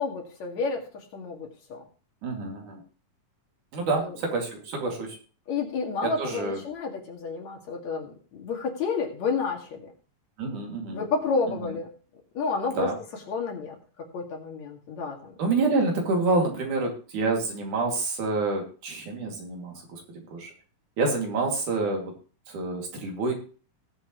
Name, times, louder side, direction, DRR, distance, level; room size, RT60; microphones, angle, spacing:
voice 1, 0.0-1.8 3.8-4.2 5.5-9.9 10.9-11.9 12.3-12.9 13.3-15.3, left 4 dB, 60° left, 1 dB, 3.2 m, -30 dB
voice 2, 2.2-2.8 3.7-5.2 6.0-6.6 10.4-11.0 12.7-12.9 15.4-20.0 20.3-20.5 21.0-22.2 22.5-23.3, right 3 dB, 65° right, 1 dB, 3.8 m, -27 dB
20.0 x 7.6 x 3.0 m, 0.38 s
omnidirectional pair, 3.9 m